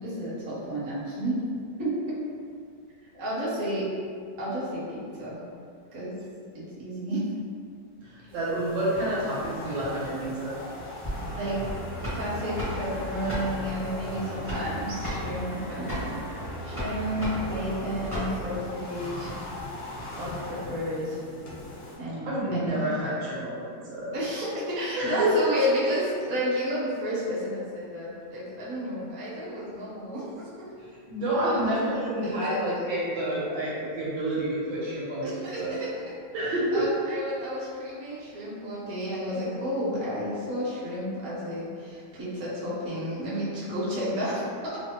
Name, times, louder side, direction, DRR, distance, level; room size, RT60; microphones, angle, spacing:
voice 1, 0.0-1.4 1.8-2.2 3.1-3.9 4.4-5.4 5.9-6.1 6.5-7.3 11.3-11.6 12.1-16.1 16.6-19.3 20.2-21.2 22.0-22.8 24.1-30.7 31.4-31.7 32.4-32.6 35.2-35.9 36.7-44.8, equal, 55° right, -9 dB, 0.9 m, -31 dB
voice 2, 8.0-10.6 22.2-23.6 23.9-24.1 25.0-25.5 30.8-35.3 35.6-35.8 36.3-37.0, right 1 dB, 70° right, -7 dB, 1.4 m, -28 dB
sound 1, 8.3-22.0, left 2 dB, 75° left, 0.6 m, -40 dB
sound 2, 11.0-18.7, equal, 20° right, 0.4 m, -34 dB
3.3 x 2.0 x 2.7 m, 2.2 s
omnidirectional pair, 2.1 m